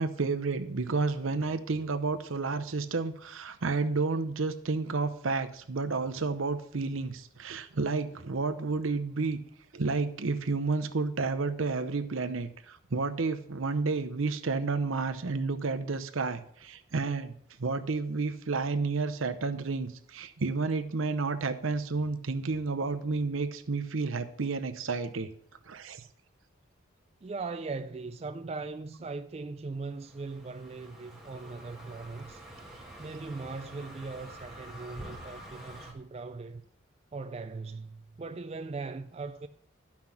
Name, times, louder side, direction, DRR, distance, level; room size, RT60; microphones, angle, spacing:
voice 1, 0.0-9.4 9.7-17.3 17.6-25.3 25.7-26.0, right 4 dB, 80° right, 0.8 m, -31 dB
voice 2, 27.2-32.4 33.0-36.6 37.1-39.5, right 3 dB, 30° right, 0.3 m, -39 dB
Car passing by, 29.9-35.9, right 1 dB, ahead, 1.5 m, -47 dB
12.0 x 5.9 x 5.9 m
head